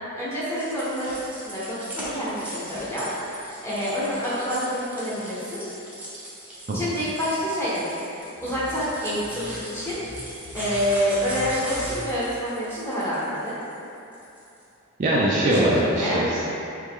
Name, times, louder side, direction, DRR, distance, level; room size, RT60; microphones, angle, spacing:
voice 1, 0.2-5.6 6.7-10.0 10.5-13.6 15.4-16.2, equal, 10° left, -10 dB, 1.0 m, -27 dB
sound 1, 0.5-14.6, equal, 5° right, 0.7 m, -39 dB
sound 2, 8.3-12.2, left 1 dB, 65° left, 0.5 m, -42 dB
voice 2, 15.0-16.4, right 1 dB, 40° right, -5 dB, 0.4 m, -22 dB
3.2 x 3.1 x 3.6 m, 2.8 s
head